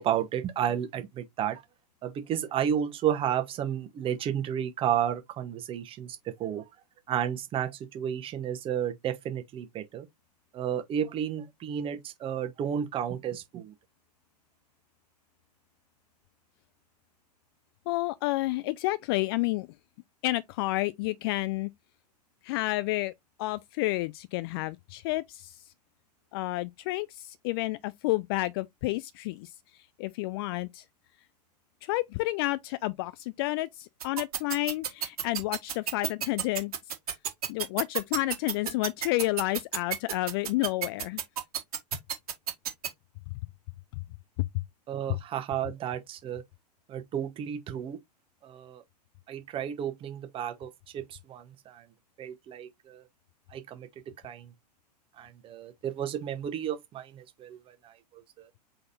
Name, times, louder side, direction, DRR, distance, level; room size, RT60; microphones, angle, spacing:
voice 1, 0.0-1.6 2.0-6.6 7.1-10.1 10.5-13.7 44.9-46.4 46.9-48.0 48.4-48.8 49.3-51.8 52.2-53.0 53.5-53.9 54.2-54.5 55.2-58.5, right 9 dB, 25° right, 1.1 m, -32 dB
voice 2, 17.9-19.7 20.2-21.7 22.4-23.1 23.4-25.6 26.3-29.5 30.0-30.8 31.8-36.7 37.5-41.2 44.4-44.6, left 19 dB, 35° left, 0.4 m, -30 dB
sound 1, 34.0-42.9, right 9 dB, 60° right, 1.5 m, -30 dB
4.9 x 4.0 x 2.7 m
figure-of-eight pair, 100°, 21 cm